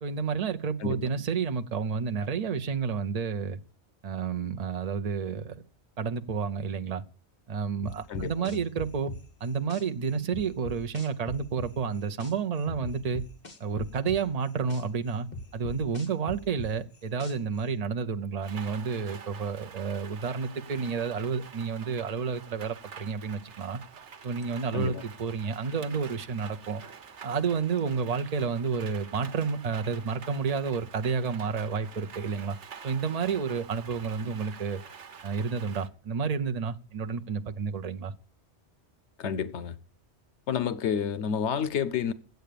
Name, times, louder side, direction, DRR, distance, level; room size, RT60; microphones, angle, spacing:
voice 1, 0.0-3.6 4.0-5.6 6.0-7.0 7.5-9.1 9.4-13.2 13.6-15.3 15.5-23.8 24.2-26.8 27.2-32.6 32.8-34.8 35.2-38.1, right 5 dB, 40° right, 0.7 m, -30 dB
sound 1, 7.8-9.8 10.3-12.3 12.7-14.8 15.3-17.6, left 1 dB, 40° left, 1.6 m, -39 dB
voice 2, 8.1-8.6 24.7-25.0 34.2-34.3 39.2-39.8 40.5-42.1, left 7 dB, 80° left, 1.0 m, -30 dB
Rain, 18.4-35.9, right 6 dB, 80° right, 1.3 m, -47 dB
9.2 x 8.0 x 6.7 m
omnidirectional pair, 1.2 m